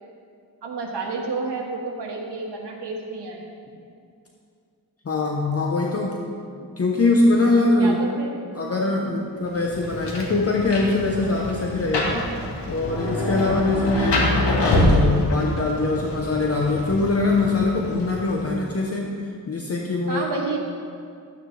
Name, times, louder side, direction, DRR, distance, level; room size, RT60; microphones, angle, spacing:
voice 1, 0.6-3.4 7.8-8.3 20.1-20.6, right 3 dB, 75° right, -1 dB, 1.7 m, -30 dB
voice 2, 5.0-6.1 6.8-8.0 8.5-12.3 12.7-19.1 19.5-20.3, left 2 dB, 35° left, -1 dB, 0.9 m, -22 dB
Rain, 9.5-18.6, left 1 dB, 90° left, 1.7 m, -25 dB
13.0 x 9.0 x 3.3 m, 2.4 s
wide cardioid pair, 110°, 41 cm